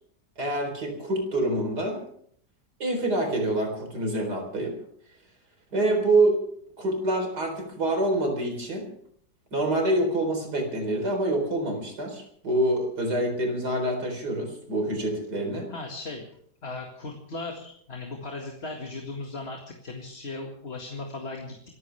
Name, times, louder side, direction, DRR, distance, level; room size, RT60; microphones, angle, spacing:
voice 1, 0.4-2.0 2.8-4.7 5.7-6.4 6.8-8.9 9.5-15.7, right 1 dB, 90° right, 4 dB, 4.7 m, -26 dB
voice 2, 15.7-16.2 16.6-21.6, left 3 dB, 40° left, 1 dB, 2.2 m, -37 dB
27.0 x 15.0 x 3.5 m, 0.63 s
omnidirectional pair, 1.7 m